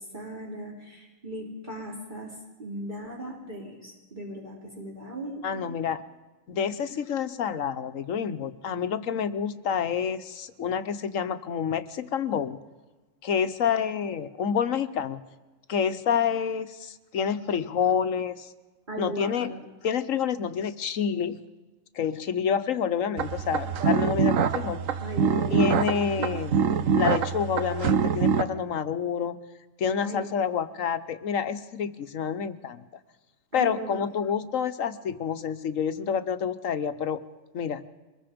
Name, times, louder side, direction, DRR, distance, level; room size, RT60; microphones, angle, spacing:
voice 1, 0.0-2.3 2.6-5.8 18.9-19.6 25.0-26.3 30.0-30.3 33.5-34.1, equal, 35° right, -2 dB, 3.6 m, -38 dB
voice 2, 5.4-6.0 6.5-12.6 13.2-15.2 15.7-18.5 19.0-19.5 19.8-21.4 21.9-24.8 25.5-26.5 26.9-29.4 29.8-32.8 33.5-37.2 37.5-37.8, left 7 dB, 85° left, 11 dB, 1.4 m, -28 dB
Yamaha Voice Double, 23.2-28.4, right 6 dB, 85° right, 1.3 m, -25 dB
24.5 x 21.5 x 5.2 m, 1.2 s
omnidirectional pair, 1.3 m